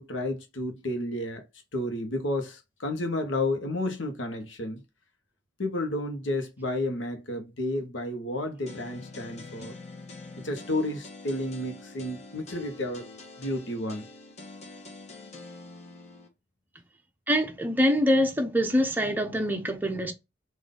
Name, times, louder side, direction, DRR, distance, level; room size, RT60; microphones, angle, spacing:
voice 1, 0.0-1.4 1.7-4.8 5.6-9.7 10.4-13.1 13.4-14.1, left 1 dB, 85° left, 1.0 m, -31 dB
sound 1, 8.7-16.3, left 3 dB, 35° left, 0.9 m, -45 dB
voice 2, 17.3-20.1, equal, 10° right, 0.6 m, -24 dB
3.8 x 2.6 x 3.7 m
head